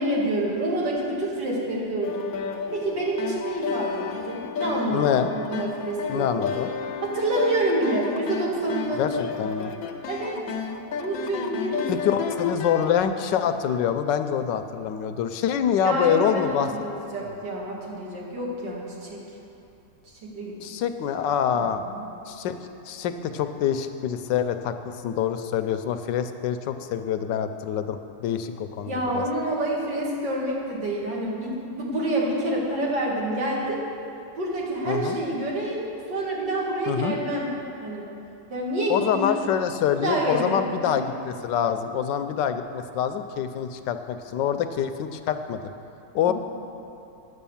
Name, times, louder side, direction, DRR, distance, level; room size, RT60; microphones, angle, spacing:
voice 1, 0.0-2.3 2.7-5.0 5.3-6.3 7.0-9.0 10.1-10.4 11.0-12.8 15.8-19.2 20.2-20.5 21.6-22.1 28.8-33.8 34.4-37.5 37.8-38.1 38.5-39.4 40.0-40.6 46.3-46.4, right 1 dB, 75° right, -4 dB, 2.7 m, -28 dB
sound 1, 2.0-13.0, left 6 dB, 65° left, 1.0 m, -32 dB
voice 2, 4.9-5.3 6.1-6.7 9.0-9.1 9.4-9.7 11.9-16.7 20.6-21.8 22.3-22.6 22.9-29.2 34.9-35.2 36.9-37.1 38.9-45.7 46.1-46.3, left 8 dB, 85° left, 9 dB, 1.3 m, -25 dB
9.9 x 8.1 x 7.1 m, 2.8 s
omnidirectional pair, 1.9 m